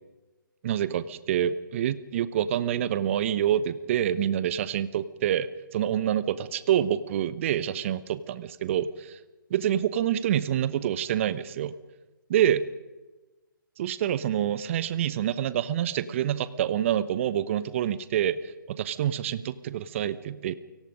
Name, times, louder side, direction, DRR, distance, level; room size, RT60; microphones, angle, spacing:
voice 1, 0.6-9.2 9.5-11.7 12.3-12.7 13.8-20.6, right 10 dB, 35° right, 15 dB, 1.2 m, -27 dB
29.5 x 18.5 x 5.3 m, 1.1 s
figure-of-eight pair, 135°, 12 cm